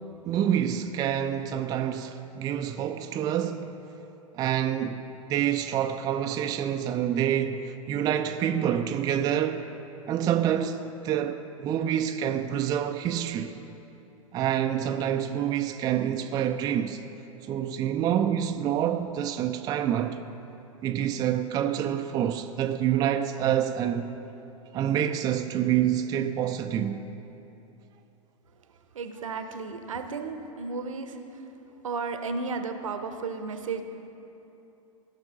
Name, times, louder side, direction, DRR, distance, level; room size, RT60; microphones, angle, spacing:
voice 1, 0.2-3.7 4.3-5.0 5.3-9.6 10.1-13.5 14.3-17.0 17.5-20.2 20.8-24.1 24.7-27.0, right 10 dB, 20° right, 0.4 m, -27 dB
voice 2, 28.9-31.2 31.8-33.8, right 4 dB, 70° right, 0.8 m, -33 dB
17.5 x 6.1 x 3.9 m
figure-of-eight pair, 95°, 17 cm